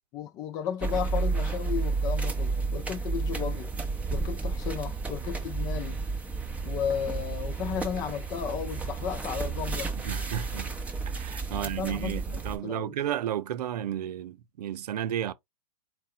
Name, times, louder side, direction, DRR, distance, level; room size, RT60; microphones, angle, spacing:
voice 1, 0.1-3.7 4.1-6.0 6.6-9.9 11.5-12.9, left 8 dB, 20° left, 0.3 m, -34 dB
sound 1, 0.8-12.6, right 4 dB, 5° right, 0.8 m, -31 dB
voice 2, 10.0-10.7 11.1-15.3, right 10 dB, 75° right, 0.6 m, -33 dB
4.7 x 2.2 x 4.2 m
hypercardioid pair, 150°, 20 cm